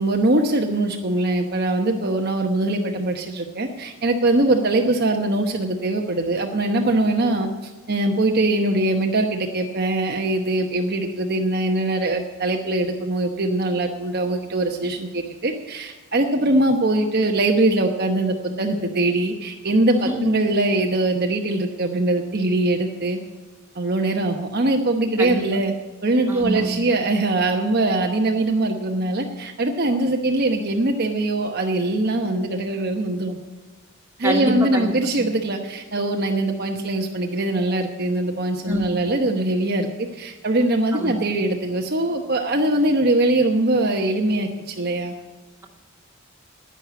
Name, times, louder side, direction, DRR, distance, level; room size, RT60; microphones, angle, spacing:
voice 1, 0.0-23.2 23.7-25.7 26.0-33.4 34.2-45.1, right 2 dB, 50° right, 3 dB, 1.0 m, -22 dB
voice 2, 19.9-20.2 25.2-25.4 26.3-26.8 34.2-35.2 38.7-38.9 40.9-41.1, right 1 dB, 10° right, 0 dB, 2.2 m, -26 dB
11.0 x 9.9 x 8.1 m, 1.3 s
head